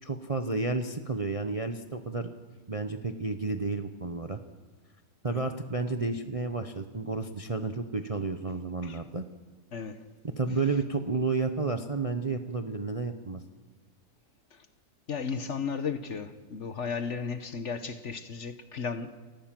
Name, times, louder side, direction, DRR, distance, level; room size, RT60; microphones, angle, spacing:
voice 1, 0.0-2.3 2.7-4.4 5.2-9.3 10.4-13.4, right 3 dB, 30° right, 0.7 m, -31 dB
voice 2, 9.7-10.0 14.5-14.7 15.1-19.2, left 5 dB, 50° left, 1.3 m, -35 dB
29.5 x 14.0 x 7.6 m
omnidirectional pair, 1.7 m